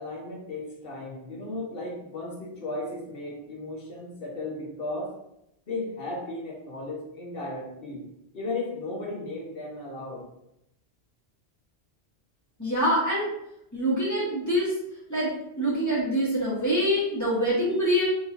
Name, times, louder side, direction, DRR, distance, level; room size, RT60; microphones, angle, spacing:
voice 1, 0.0-5.1 5.7-8.1 8.3-10.2, left 2 dB, 60° left, -2 dB, 1.3 m, -35 dB
voice 2, 12.6-13.3 13.7-14.7 15.1-18.0, equal, 15° left, -7 dB, 1.6 m, -25 dB
4.0 x 3.7 x 2.6 m, 0.80 s
omnidirectional pair, 1.1 m